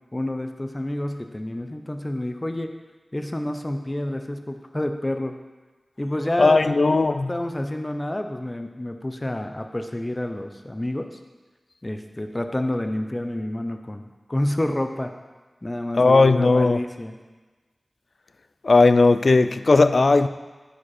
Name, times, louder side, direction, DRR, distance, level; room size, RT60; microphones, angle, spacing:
voice 1, 0.1-2.7 3.1-5.4 6.0-7.0 7.3-11.1 11.8-14.0 14.3-15.1 15.6-17.2, left 1 dB, 25° left, 0.7 m, -29 dB
voice 2, 6.4-7.3 16.0-16.8 18.6-20.3, left 3 dB, 65° left, 0.3 m, -17 dB
10.5 x 5.1 x 4.2 m
wide cardioid pair, 70°, 0 cm